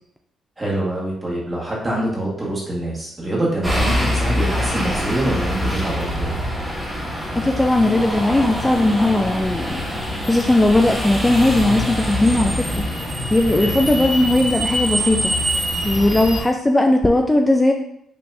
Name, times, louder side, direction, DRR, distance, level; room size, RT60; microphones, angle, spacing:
voice 1, 0.6-6.3 13.6-13.8, right 1 dB, 20° right, -5 dB, 1.6 m, -25 dB
sound 1, 3.6-16.4, equal, 5° right, 1.5 m, -24 dB
voice 2, 7.3-12.9 13.3-15.3 15.8-17.7, left 1 dB, 15° left, 3 dB, 0.4 m, -18 dB
5.5 x 3.4 x 2.6 m, 0.71 s
cardioid pair, 90°, 0 cm